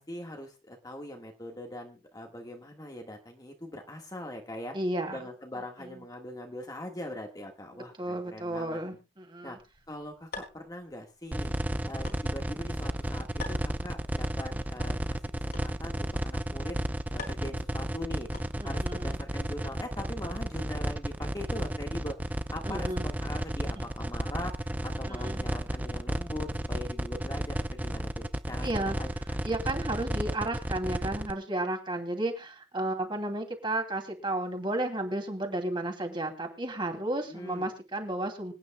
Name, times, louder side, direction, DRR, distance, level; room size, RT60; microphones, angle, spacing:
voice 1, 0.0-4.8 5.1-8.8 9.4-9.6 9.9-11.5 11.9-15.2 15.4-16.8 17.1-18.3 18.6-29.1 37.3-37.7, left 1 dB, 20° left, 3 dB, 1.6 m, -41 dB
voice 2, 4.7-5.2 5.8-5.9 8.0-9.6 18.6-19.2 22.6-23.1 25.1-25.4 28.6-29.0 29.4-38.5, right 1 dB, 30° right, 3 dB, 2.6 m, -33 dB
sound 1, 9.6-18.9, left 3 dB, 60° left, 4.2 m, -49 dB
sound 2, 11.3-31.3, right 1 dB, 10° right, 0.6 m, -32 dB
25.5 x 9.4 x 2.2 m, 0.26 s
head